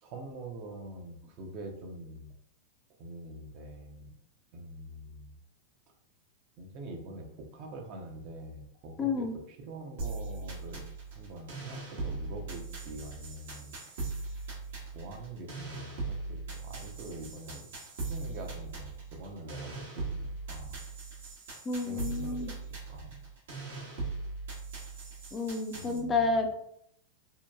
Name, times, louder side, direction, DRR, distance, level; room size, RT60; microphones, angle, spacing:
voice 1, 0.0-2.3 3.0-4.1 4.5-5.3 6.6-10.8 11.1-14.5 14.9-17.7 18.1-20.8 21.9-22.6 22.9-23.2 25.0-25.1 25.7-26.2, right 2 dB, 45° right, 2 dB, 0.5 m, -45 dB
voice 2, 9.0-9.3 21.7-22.5 25.3-26.6, left 3 dB, 25° left, 3 dB, 0.4 m, -30 dB
sound 1, 10.0-26.0, right 3 dB, 70° right, 0.9 m, -40 dB
2.8 x 2.1 x 2.2 m, 0.72 s
hypercardioid pair, 105°, 0 cm